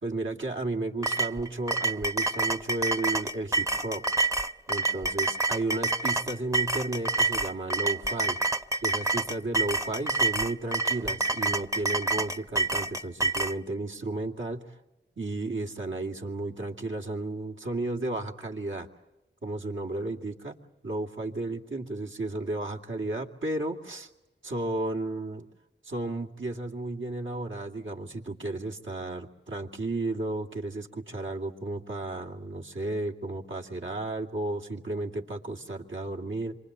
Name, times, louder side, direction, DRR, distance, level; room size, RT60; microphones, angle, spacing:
voice 1, 0.0-4.0 4.7-8.4 8.8-14.8 15.2-18.9 19.4-20.6 20.8-24.1 24.4-25.5 25.8-36.6, right 2 dB, 75° right, 0 dB, 2.6 m, -33 dB
sound 1, 1.0-13.6, right 3 dB, 15° right, 0.8 m, -28 dB
27.0 x 24.5 x 8.0 m, 1.0 s
wide cardioid pair, 50°, 20 cm